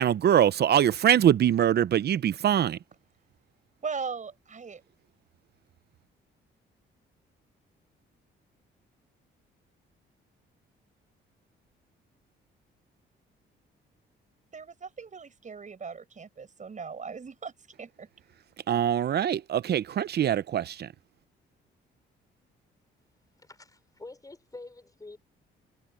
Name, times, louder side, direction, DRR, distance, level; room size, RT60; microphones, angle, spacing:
voice 1, 0.0-2.8 18.7-20.9, right 10 dB, 55° right, 0.8 m, -23 dB
voice 2, 3.8-4.8 14.5-18.1, right 5 dB, 40° right, 7.4 m, -39 dB
voice 3, 23.4-25.2, left 2 dB, 20° left, 5.2 m, -46 dB
cardioid pair, 90°, 20 cm